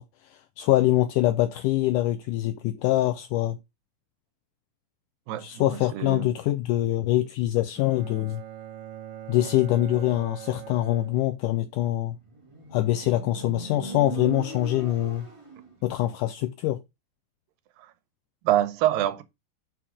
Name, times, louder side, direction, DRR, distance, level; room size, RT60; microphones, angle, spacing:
voice 1, 0.0-3.6 5.4-8.4 9.3-12.2 12.7-15.3 15.8-16.8, left 15 dB, 80° left, 2.0 m, -24 dB
voice 2, 5.3-6.3 17.8-17.9 18.4-19.2, right 12 dB, 85° right, 2.5 m, -26 dB
Bowed string instrument, 7.8-11.8, right 11 dB, 60° right, 2.3 m, -42 dB
Motorcycle, 12.2-15.7, right 4 dB, 25° right, 0.7 m, -39 dB
6.1 x 5.7 x 4.8 m
omnidirectional pair, 4.0 m